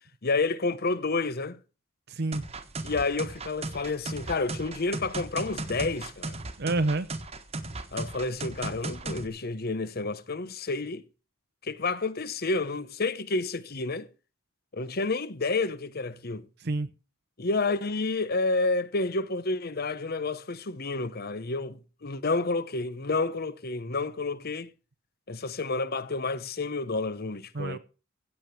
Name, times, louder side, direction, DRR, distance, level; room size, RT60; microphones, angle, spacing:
voice 1, 0.2-1.6 2.8-6.4 7.9-11.0 11.6-14.1 14.7-16.5 17.4-24.7 25.3-27.8, left 3 dB, 50° left, 1.0 m, -30 dB
voice 2, 2.1-2.4 6.6-7.1 16.6-16.9 27.5-27.8, right 2 dB, 55° right, 0.8 m, -28 dB
sound 1, 2.3-9.3, right 2 dB, 30° right, 1.3 m, -36 dB
16.0 x 6.9 x 6.0 m
head